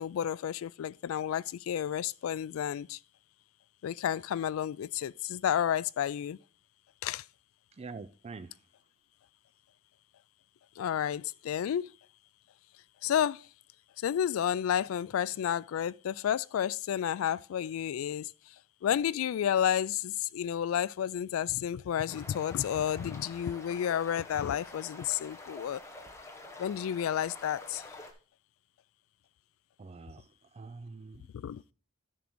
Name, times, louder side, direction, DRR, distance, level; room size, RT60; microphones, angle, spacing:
voice 1, 0.0-3.0 3.8-6.4 7.0-7.2 10.8-11.9 13.0-13.5 14.0-18.5 18.8-25.8 26.6-27.9 31.3-31.7, left 9 dB, 80° left, 0.3 m, -31 dB
voice 2, 7.7-8.6 29.8-31.3, right 4 dB, 30° right, 0.4 m, -46 dB
sound 1, 22.1-28.1, left 2 dB, 15° left, 1.1 m, -48 dB
10.5 x 3.8 x 6.0 m
head